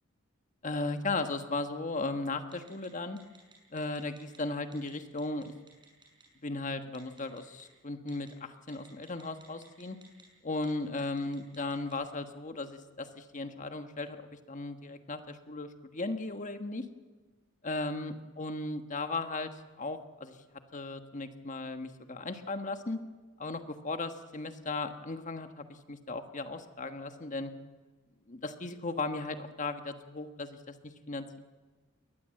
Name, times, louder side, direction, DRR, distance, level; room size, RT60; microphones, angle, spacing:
voice 1, 0.6-3.2 3.7-5.5 6.4-10.0 10.4-16.8 17.6-20.4 20.7-23.0 23.4-27.5 28.3-31.4, left 2 dB, 40° left, 8 dB, 1.4 m, -36 dB
Telephone, 2.5-2.9 3.2-4.4 4.7-4.9 5.2-6.2 6.9-7.6 8.1-8.3 8.7-10.2 10.5-10.7 11.0-11.9, right 5 dB, 25° right, 6.5 m, -57 dB
21.5 x 19.0 x 7.7 m, 1.3 s
head